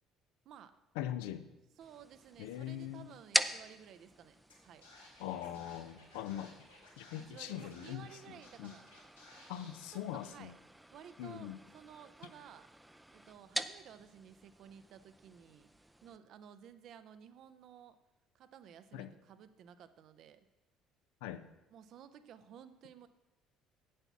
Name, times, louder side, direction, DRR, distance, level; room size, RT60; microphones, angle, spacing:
voice 1, 0.4-0.8 1.8-4.9 7.2-8.9 10.1-10.6 10.9-15.7 16.0-18.0 18.3-20.5 21.7-23.1, right 8 dB, 50° right, 11 dB, 0.6 m, -55 dB
voice 2, 1.0-1.5 2.4-3.1 5.2-6.7 7.0-8.1 8.6-8.7 9.5-10.6 11.2-11.6 18.9-19.1 21.2-21.4, left 11 dB, 65° left, 11 dB, 0.5 m, -41 dB
sound 1, 1.8-16.2, right 1 dB, 5° right, 0.5 m, -44 dB
Scratching (performance technique), 4.5-4.6 4.8-8.1 8.4-9.7, left 2 dB, 90° left, 2.8 m, -58 dB
8.0 x 7.7 x 5.8 m, 1.0 s
figure-of-eight pair, 55°, 0 cm